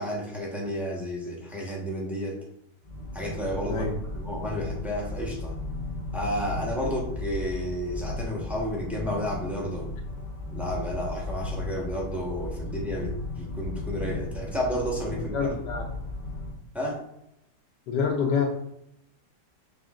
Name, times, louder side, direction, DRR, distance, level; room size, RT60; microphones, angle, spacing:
voice 1, 0.0-2.4 3.1-5.6 6.1-9.9 10.5-15.5 16.7-17.0, equal, ahead, -3 dB, 0.8 m, -31 dB
sound 1, 2.8-16.5, left 2 dB, 35° left, 0.8 m, -35 dB
voice 2, 15.3-15.9 17.9-18.5, left 6 dB, 80° left, -1 dB, 1.3 m, -26 dB
6.2 x 3.4 x 2.4 m, 0.77 s
omnidirectional pair, 1.8 m